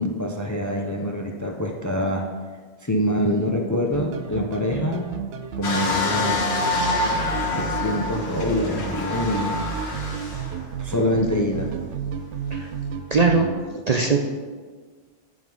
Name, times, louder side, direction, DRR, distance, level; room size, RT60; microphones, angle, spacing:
voice 1, 0.0-2.3 2.8-5.1 5.6-6.5 7.5-9.7 10.8-11.7, left 1 dB, 20° left, 2 dB, 0.5 m, -25 dB
sound 1, 3.9-13.5, right 6 dB, 85° right, 1.0 m, -32 dB
sound 2, 5.6-10.6 11.2-11.3, left 3 dB, 70° left, 1.9 m, -26 dB
voice 2, 13.1-13.5 13.9-14.3, right 4 dB, 45° right, 2 dB, 0.5 m, -20 dB
10.5 x 3.9 x 5.3 m, 1.5 s
omnidirectional pair, 1.2 m